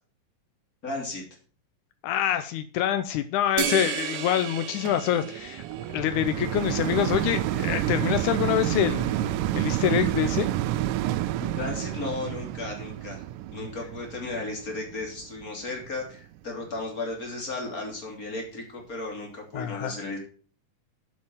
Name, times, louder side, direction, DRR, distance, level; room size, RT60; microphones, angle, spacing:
voice 1, 0.8-1.2 11.4-13.2 13.5-20.2, left 3 dB, 25° left, 1 dB, 3.1 m, -35 dB
voice 2, 2.0-5.6 5.9-10.5 19.5-20.0, left 11 dB, 85° left, 10 dB, 1.8 m, -26 dB
sound 1, 3.6-6.3, right 9 dB, 70° right, 2.2 m, -33 dB
sound 2, 4.8-16.1 16.7-16.8, right 13 dB, 85° right, 1.9 m, -29 dB
7.5 x 7.3 x 7.2 m, 0.41 s
omnidirectional pair, 4.3 m